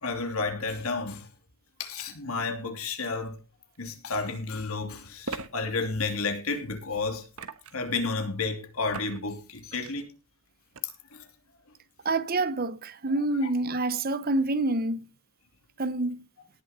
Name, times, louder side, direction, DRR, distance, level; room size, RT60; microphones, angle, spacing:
voice 1, 0.0-1.3 1.8-3.4 3.8-7.2 7.7-10.1 13.4-13.5, left 3 dB, 80° left, 2.7 m, -31 dB
sound 1, 3.7-3.8 5.2-5.5 7.3-7.9 8.9-9.2 9.6-9.9 10.7-10.8, right 3 dB, 80° right, 1.2 m, -38 dB
voice 2, 12.0-15.1 15.8-16.2, right 2 dB, 45° right, 0.8 m, -27 dB
18.0 x 7.1 x 4.2 m
head